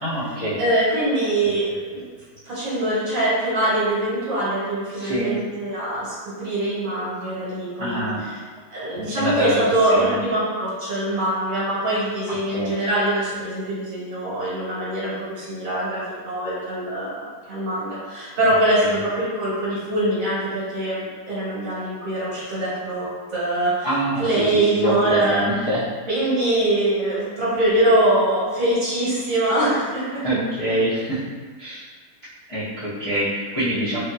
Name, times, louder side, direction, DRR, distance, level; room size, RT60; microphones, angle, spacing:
voice 1, 0.0-0.6 4.9-5.4 7.8-8.2 8.9-10.2 12.3-12.7 18.4-18.5 18.8-19.0 23.8-25.9 30.2-31.8 32.5-34.0, right 1 dB, 35° left, -14 dB, 0.5 m, -25 dB
voice 2, 0.6-2.0 2.4-6.1 6.4-8.1 8.7-23.9 24.2-25.5 26.1-30.2, right 1 dB, 65° right, -8 dB, 1.3 m, -23 dB
3.3 x 2.3 x 2.7 m, 1.5 s
omnidirectional pair, 1.7 m